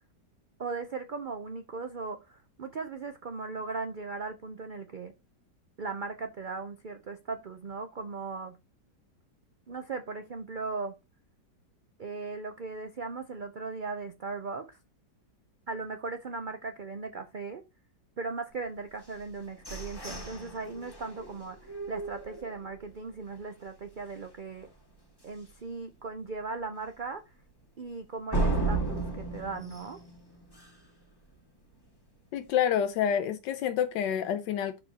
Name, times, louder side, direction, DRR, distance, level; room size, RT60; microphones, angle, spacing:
voice 1, 0.6-5.1 5.8-8.6 9.7-10.9 12.0-14.8 15.7-17.6 18.2-24.7 25.2-27.2 27.8-30.0, right 4 dB, 60° right, 0.5 m, -38 dB
sound 1, 19.0-22.9 23.4-23.5 23.8-24.2 24.6-24.7 25.2-25.3 28.3-31.0, right 3 dB, 15° left, 1.7 m, -34 dB
voice 2, 32.3-34.8, left 9 dB, 90° left, 1.4 m, -28 dB
12.0 x 4.4 x 2.9 m
omnidirectional pair, 1.8 m